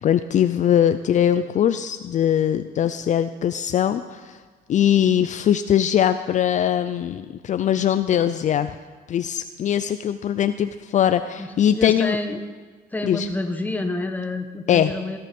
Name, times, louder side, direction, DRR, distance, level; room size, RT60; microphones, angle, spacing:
voice 1, 0.0-4.4 4.7-8.7 9.1-12.2 13.0-13.3 14.7-14.9, left 10 dB, 45° left, 10 dB, 0.5 m, -21 dB
voice 2, 11.4-12.4 12.9-15.2, left 2 dB, 10° left, 5 dB, 1.3 m, -28 dB
18.0 x 10.5 x 5.3 m, 1.5 s
cardioid pair, 110°, 17 cm